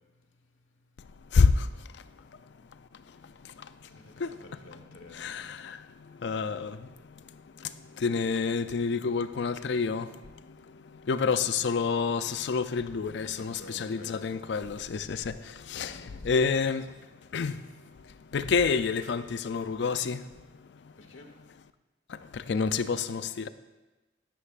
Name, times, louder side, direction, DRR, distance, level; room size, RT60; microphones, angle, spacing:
voice 1, 1.3-1.7 4.2-4.4 5.1-6.9 7.6-10.1 10.5-10.6 10.9-16.9 17.3-17.6 18.3-20.3 22.1-23.5, left 5 dB, 65° left, 0.4 m, -28 dB
voice 2, 3.0-3.6 3.9-5.6 6.1-6.3 11.2-11.4 13.2-14.5 15.7-16.7 21.0-21.3, left 1 dB, 90° left, 1.2 m, -51 dB
11.5 x 11.0 x 2.5 m
head